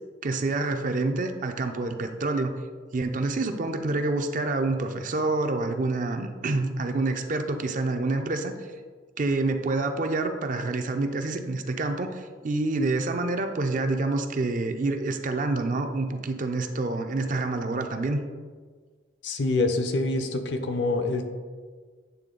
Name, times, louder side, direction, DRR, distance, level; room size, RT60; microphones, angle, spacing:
voice 1, 0.2-2.5 2.9-8.7 9.2-18.2, right 2 dB, 45° right, 7 dB, 0.5 m, -27 dB
voice 2, 19.2-21.3, left 2 dB, 70° left, 7 dB, 0.6 m, -26 dB
8.3 x 3.5 x 3.8 m, 1.6 s
head